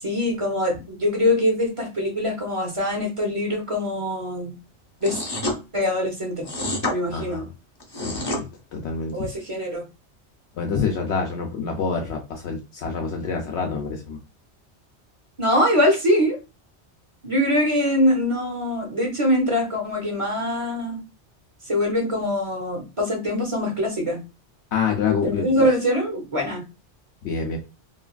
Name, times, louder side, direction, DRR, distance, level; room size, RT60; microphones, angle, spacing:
voice 1, 0.0-4.5 5.0-5.2 5.7-6.5 6.9-7.4 9.1-9.8 15.4-16.4 17.2-21.0 21.6-24.2 25.2-26.6, left 1 dB, 30° right, 1 dB, 0.7 m, -23 dB
sound 1, 5.0-5.6 6.4-7.0 7.8-8.4, left 1 dB, 35° left, 0.4 m, -27 dB
voice 2, 7.1-7.5 8.0-8.5 8.7-9.3 10.6-14.2 24.7-25.7 27.2-27.6, left 5 dB, 70° left, 1 dB, 0.8 m, -27 dB
3.1 x 2.3 x 2.3 m, 0.28 s
omnidirectional pair, 1.2 m